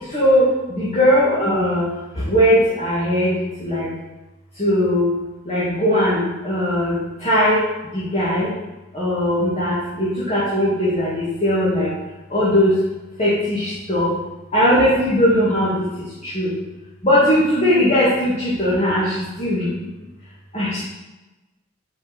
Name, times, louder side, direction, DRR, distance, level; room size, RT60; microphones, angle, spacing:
voice 1, 0.1-1.9 2.3-3.3 3.6-3.8 4.6-5.1 5.5-7.0 7.2-7.6 7.9-8.5 8.9-11.9 12.3-12.8 13.2-14.1 14.5-15.7 16.3-16.5 17.0-19.1 19.4-19.6 20.5-20.8, equal, 30° left, -9 dB, 2.1 m, -18 dB
5.7 x 5.4 x 6.0 m, 1.1 s
head